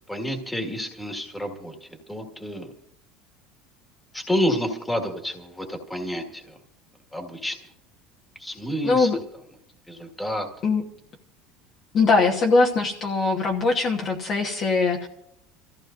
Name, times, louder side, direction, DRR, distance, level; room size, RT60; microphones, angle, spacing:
voice 1, 0.1-2.7 4.1-6.6 7.1-7.6 8.4-9.1 9.9-10.5, equal, 5° left, 4 dB, 1.7 m, -29 dB
voice 2, 8.8-9.2 10.6-10.8 11.9-15.1, left 3 dB, 30° left, 0 dB, 1.1 m, -21 dB
27.0 x 14.5 x 2.6 m, 0.75 s
cardioid pair, 160°, 0 cm